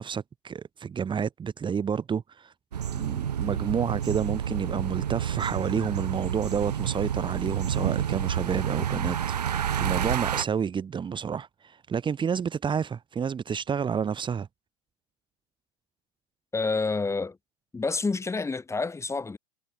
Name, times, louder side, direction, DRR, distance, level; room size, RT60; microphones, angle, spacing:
voice 1, 0.0-2.5 2.9-14.5, right 7 dB, 25° right, 3.3 m, -30 dB
sound 1, 2.7-10.4, right 9 dB, 80° right, 4.0 m, -29 dB
voice 2, 16.5-17.4 17.7-19.4, left 4 dB, 15° left, 5.7 m, -28 dB
hypercardioid pair, 90°, 20 cm